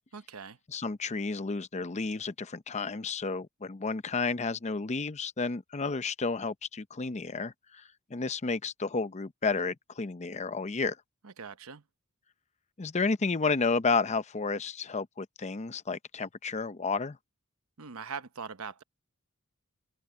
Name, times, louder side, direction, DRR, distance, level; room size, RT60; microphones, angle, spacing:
voice 1, 0.1-0.6 11.2-11.8 17.8-18.8, right 5 dB, 85° right, 0.9 m, -41 dB
voice 2, 0.7-7.8 8.1-11.0 12.8-17.2, left 4 dB, 30° left, 0.7 m, -31 dB
open air
head